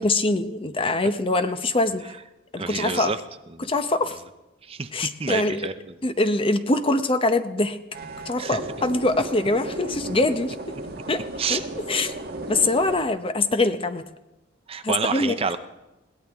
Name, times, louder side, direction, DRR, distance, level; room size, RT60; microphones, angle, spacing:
voice 1, 0.0-2.1 2.5-3.1 3.6-4.2 4.9-5.6 6.0-7.8 8.3-10.7 11.1-11.2 11.5-11.6 11.9-12.1 12.5-14.0 14.8-15.4, left 2 dB, 25° left, 9 dB, 0.7 m, -23 dB
voice 2, 2.6-3.2 3.5-3.7 4.6-4.9 5.2-6.0 8.4-8.6 11.4-11.6 14.7-15.6, right 5 dB, 30° right, 10 dB, 0.6 m, -28 dB
sound 1, 7.9-13.0, right 1 dB, 50° right, 1.5 m, -35 dB
21.5 x 16.5 x 3.6 m, 0.99 s
head